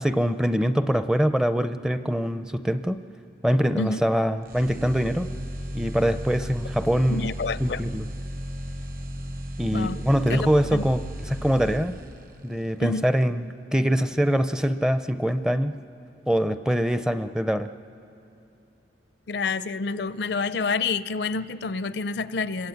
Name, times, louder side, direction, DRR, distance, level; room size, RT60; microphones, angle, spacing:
voice 1, 0.0-3.0 3.4-5.3 5.7-7.3 7.6-8.1 9.6-11.9 12.4-13.4 13.7-15.8 16.3-17.7, equal, 5° right, 10 dB, 0.5 m, -23 dB
sound 1, 4.5-12.4, equal, 50° right, 1.1 m, -35 dB
voice 2, 7.1-7.8 9.7-10.0 10.3-10.9 12.8-13.1 19.3-22.7, left 4 dB, 65° left, 15 dB, 0.5 m, -28 dB
25.5 x 22.0 x 8.7 m, 2.9 s
head